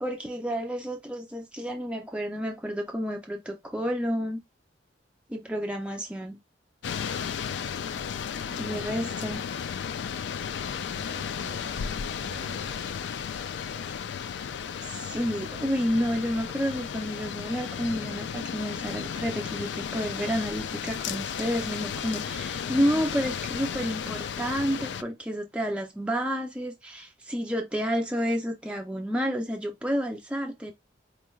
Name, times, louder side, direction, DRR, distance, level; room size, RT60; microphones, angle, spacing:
voice 1, 0.0-4.4 5.3-6.4 8.6-9.4 14.8-30.7, equal, 5° right, 0.4 m, -30 dB
sound 1, 6.8-25.0, left 7 dB, 70° left, 0.3 m, -34 dB
voice 2, 8.4-8.9 10.7-13.0, right 1 dB, 75° right, 0.9 m, -47 dB
4.5 x 3.1 x 2.3 m
head